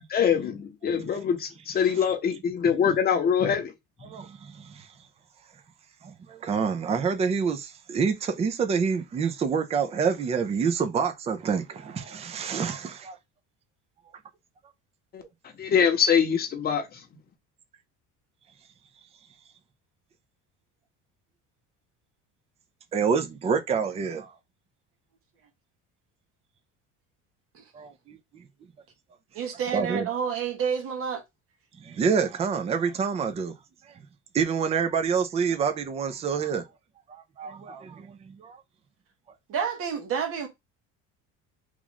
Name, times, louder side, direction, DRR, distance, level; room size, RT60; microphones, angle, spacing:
voice 1, 0.1-3.7 15.1-15.2 15.6-16.8, left 7 dB, 30° left, 0.8 m, -24 dB
voice 2, 4.0-4.9 6.0-13.2 22.9-24.3 27.7-28.2 29.7-30.1 31.8-33.5 34.3-36.6 37.1-38.6, right 6 dB, 20° right, 0.4 m, -27 dB
voice 3, 29.3-31.2 39.5-40.5, right 7 dB, 50° right, 1.2 m, -29 dB
3.0 x 2.4 x 3.9 m
cardioid pair, 145°, 30 cm